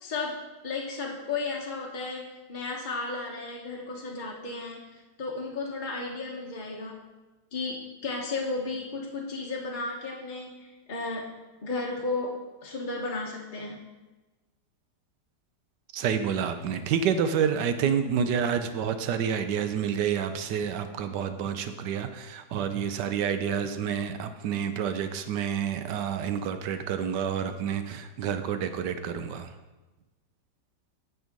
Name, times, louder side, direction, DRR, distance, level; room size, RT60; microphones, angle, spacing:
voice 1, 0.0-7.1 7.5-11.3 11.6-13.8, left 3 dB, 30° left, -2 dB, 1.1 m, -34 dB
voice 2, 15.9-29.5, right 7 dB, 75° right, 9 dB, 1.3 m, -29 dB
9.0 x 6.5 x 5.2 m, 1.2 s
omnidirectional pair, 1.9 m